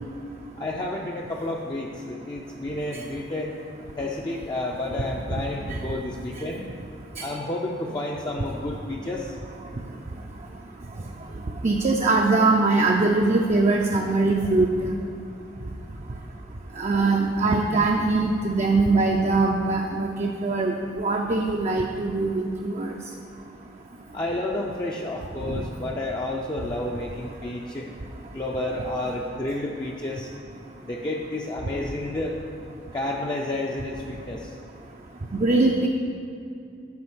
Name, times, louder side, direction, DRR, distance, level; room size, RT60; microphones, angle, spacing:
voice 1, 0.6-3.5 4.0-6.6 7.2-9.3 24.1-27.9 28.3-30.3 30.9-32.4 32.9-34.5, left 1 dB, 20° left, -2 dB, 0.5 m, -30 dB
voice 2, 11.6-14.9 16.8-22.9 35.3-35.9, right 3 dB, 35° right, 1 dB, 0.5 m, -22 dB
9.5 x 4.9 x 6.0 m, 2.6 s
head